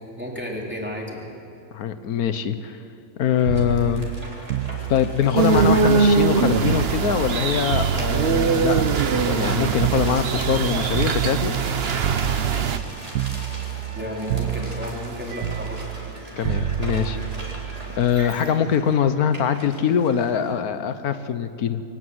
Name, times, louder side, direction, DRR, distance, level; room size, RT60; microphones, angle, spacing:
voice 1, 0.2-1.2 13.9-15.8, equal, 5° right, -2 dB, 3.7 m, -32 dB
voice 2, 1.7-2.8 3.2-4.1 4.9-11.5 16.4-17.2 18.0-21.8, left 8 dB, 90° left, 11 dB, 1.4 m, -23 dB
sound 1, 3.3-20.6, equal, 25° right, 3.7 m, -40 dB
sound 2, 3.5-7.4 7.7-11.7 12.0-12.9 13.1-14.0 14.3-18.3 19.5-19.7, right 11 dB, 70° right, 1.1 m, -28 dB
sound 3, 5.4-12.8, right 5 dB, 50° right, 1.0 m, -22 dB
23.5 x 18.5 x 8.0 m, 2.5 s
omnidirectional pair, 1.5 m